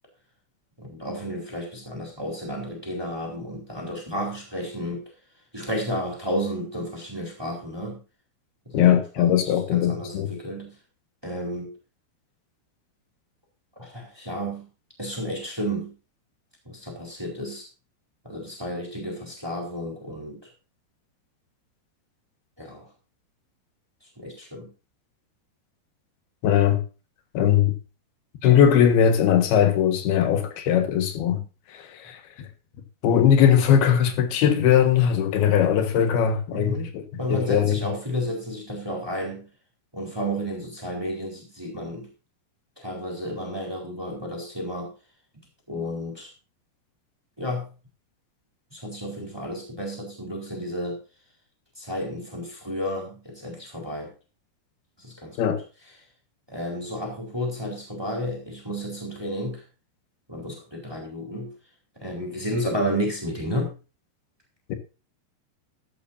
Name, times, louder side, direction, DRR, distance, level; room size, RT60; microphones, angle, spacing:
voice 1, 0.8-5.0 5.5-8.0 8.7-10.7 11.2-11.7 13.8-14.7 15.0-15.9 16.6-17.7 18.2-20.5 22.6-22.9 24.2-24.7 31.3-31.4 36.5-36.9 37.2-39.5 39.9-42.1 42.8-44.9 45.7-46.3 47.4-47.7 48.7-51.0 51.8-54.1 55.0-55.6 56.5-59.6 60.3-61.5 62.0-63.7, equal, 5° right, 3.8 m, -32 dB
voice 2, 8.7-10.4 26.4-26.8 27.3-27.7 28.4-31.4 31.7-32.5 33.0-37.0 37.3-37.8 55.4-55.6 64.7-64.8, left 9 dB, 70° left, 3.4 m, -20 dB
13.5 x 12.5 x 2.7 m
omnidirectional pair, 4.8 m